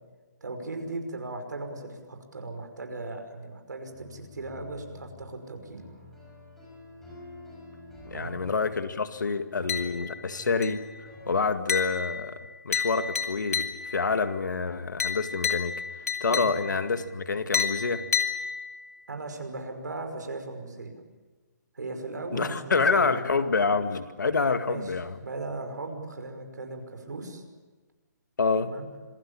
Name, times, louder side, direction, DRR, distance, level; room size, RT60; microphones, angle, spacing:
voice 1, 0.4-5.8 8.1-8.4 16.3-16.4 19.1-20.9 21.8-23.1 24.7-24.9 25.2-27.4 28.6-28.9, right 2 dB, 80° right, 5 dB, 5.5 m, -37 dB
sound 1, 3.9-11.6, left 2 dB, 5° left, 5.5 m, -49 dB
voice 2, 8.1-10.8 11.3-12.4 12.6-15.7 16.2-18.0 22.3-25.2 28.4-28.7, left 4 dB, 85° left, 9 dB, 2.1 m, -27 dB
sound 2, 9.7-10.3 10.6-11.0 11.7-14.1 15.0-16.9 17.5-19.0, left 7 dB, 60° left, 2.6 m, -31 dB
26.5 x 17.0 x 8.7 m, 1.3 s
hypercardioid pair, 175°, 10 cm